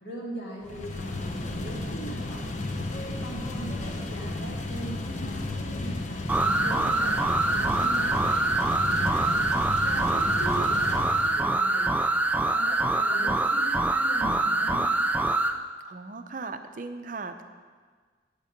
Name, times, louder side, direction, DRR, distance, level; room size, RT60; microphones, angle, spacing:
voice 1, 0.0-2.4 2.9-6.0 6.3-9.4 9.8-12.0 12.5-15.0, right 1 dB, 60° left, -4 dB, 2.7 m, -40 dB
sound 1, 0.6-11.5, left 2 dB, 40° left, 0.8 m, -33 dB
sound 2, 6.3-15.6, right 2 dB, 10° right, 0.3 m, -25 dB
voice 2, 15.9-17.4, right 3 dB, 45° right, 8 dB, 0.6 m, -37 dB
11.0 x 8.3 x 5.2 m, 1.5 s
head